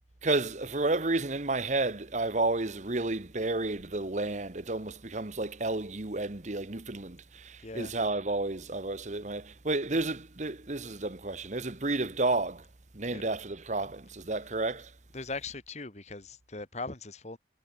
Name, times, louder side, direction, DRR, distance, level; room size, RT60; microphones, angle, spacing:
voice 1, 0.2-12.6 12.9-14.9, right 2 dB, 45° right, 1.3 m, -31 dB
voice 2, 7.6-8.0 13.1-13.2 15.1-17.4, left 3 dB, 40° left, 2.0 m, -39 dB
head